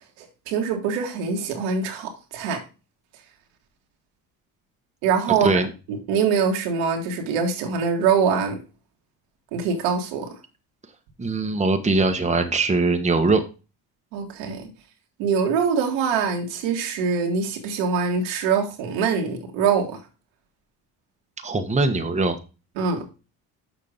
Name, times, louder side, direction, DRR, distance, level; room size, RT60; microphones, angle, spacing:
voice 1, 0.2-2.6 5.0-5.5 5.9-8.6 9.5-10.4 14.1-14.7 15.2-20.0 22.8-23.0, right 6 dB, 80° right, 1.9 m, -24 dB
voice 2, 11.2-13.4 21.4-22.4, right 3 dB, 15° right, 1.2 m, -21 dB
6.9 x 5.3 x 5.1 m
hypercardioid pair, 65°, 46 cm